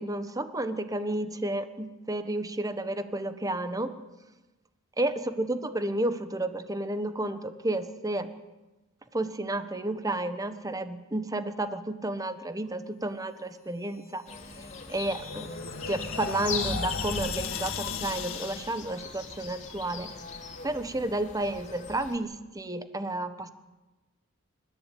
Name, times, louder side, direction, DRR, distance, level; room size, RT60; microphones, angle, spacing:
voice 1, 0.0-3.9 5.0-8.3 9.1-14.2 14.9-20.1 20.6-23.5, right 1 dB, 15° right, 10 dB, 1.2 m, -31 dB
sound 1, 14.3-22.2, left 6 dB, 35° left, 3.0 m, -40 dB
sound 2, 14.4-18.9, left 4 dB, 70° left, 2.1 m, -36 dB
28.5 x 14.5 x 9.2 m, 1.1 s
head